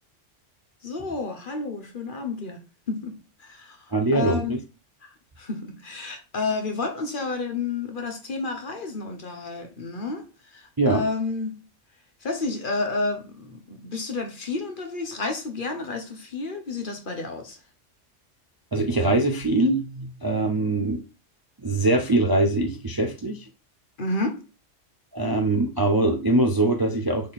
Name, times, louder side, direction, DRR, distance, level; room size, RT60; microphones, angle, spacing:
voice 1, 0.8-2.6 2.9-4.5 5.0-11.6 12.2-17.6 24.0-24.4, left 3 dB, 45° left, 1.2 m, -31 dB
voice 2, 3.9-4.6 10.8-11.0 18.7-21.0 21.6-23.5 25.1-27.3, right 2 dB, 25° right, 0.5 m, -22 dB
6.6 x 3.8 x 4.1 m
omnidirectional pair, 1.3 m